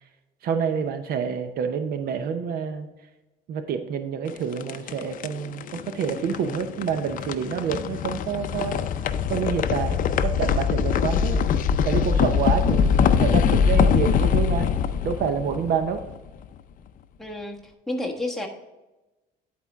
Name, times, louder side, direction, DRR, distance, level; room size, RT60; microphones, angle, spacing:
voice 1, 0.4-2.9 3.5-8.8 9.3-11.4 11.8-14.7 15.0-16.0, right 7 dB, 65° right, 8 dB, 0.7 m, -28 dB
sound 1, 4.3-16.4, left 7 dB, 55° left, 0.5 m, -23 dB
voice 2, 17.2-17.6 17.9-18.5, left 1 dB, ahead, -1 dB, 1.3 m, -30 dB
10.5 x 4.3 x 3.5 m, 1.0 s
cardioid pair, 110°, 17 cm